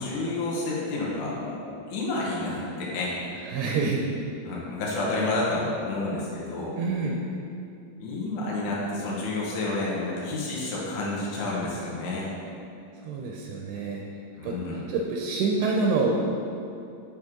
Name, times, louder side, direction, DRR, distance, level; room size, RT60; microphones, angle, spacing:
voice 1, 0.0-1.6 1.9-3.1 4.4-6.8 8.0-12.3 14.4-14.9, left 2 dB, 70° left, -6 dB, 2.0 m, -30 dB
voice 2, 3.5-4.1 6.8-7.2 13.0-14.0 14.4-14.5 14.9-16.1, right 4 dB, 85° right, -1 dB, 2.7 m, -27 dB
6.4 x 6.2 x 3.7 m, 2.6 s
omnidirectional pair, 4.8 m